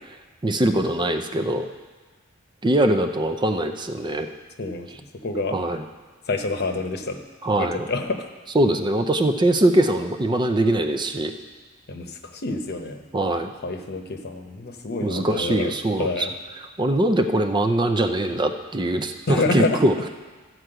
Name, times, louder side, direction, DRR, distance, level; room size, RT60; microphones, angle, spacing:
voice 1, 0.4-1.7 2.6-4.3 5.5-5.8 7.4-7.9 8.5-11.3 13.1-13.5 15.0-16.3 16.8-20.1, right 1 dB, 20° right, 7 dB, 0.5 m, -22 dB
voice 2, 5.2-5.6 6.3-7.2 7.6-8.3 11.9-13.0 13.6-15.7 16.0-16.3 19.3-19.8, left 2 dB, 55° left, 5 dB, 0.9 m, -27 dB
13.0 x 4.7 x 7.8 m, 1.3 s
head